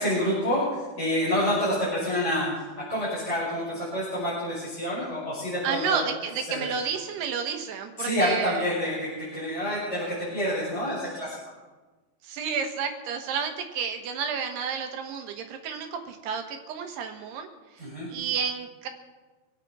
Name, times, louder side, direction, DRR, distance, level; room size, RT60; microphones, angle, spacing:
voice 1, 0.0-2.6 2.9-6.0 6.5-6.7 8.0-11.4 17.8-18.1, equal, 15° left, -10 dB, 5.9 m, -28 dB
voice 2, 5.6-8.7 12.2-17.5 18.1-18.9, right 6 dB, 85° right, 5 dB, 3.5 m, -31 dB
27.0 x 9.1 x 4.6 m, 1.3 s
omnidirectional pair, 4.6 m